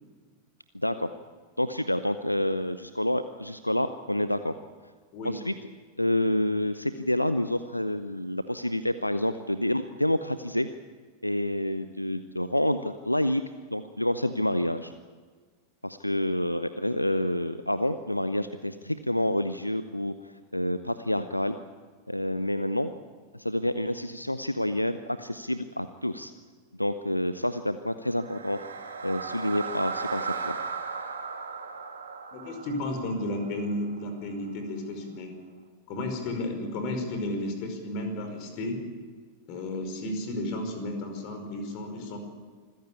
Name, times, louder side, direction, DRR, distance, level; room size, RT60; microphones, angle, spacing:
voice 1, 0.7-1.1 1.6-4.5 5.2-5.5 6.0-10.7 11.2-13.4 13.7-14.9 15.8-21.5 22.1-22.9 23.3-26.3 26.8-28.6 29.0-30.6, left 1 dB, 85° left, 12 dB, 0.7 m, -28 dB
sound 1, 28.1-34.3, right 5 dB, 70° right, 2.6 m, -36 dB
voice 2, 32.3-35.3 35.9-38.8 39.5-42.2, left 1 dB, 45° left, 6 dB, 5.1 m, -33 dB
25.5 x 15.0 x 8.5 m, 1.5 s
figure-of-eight pair, 90°, 0 cm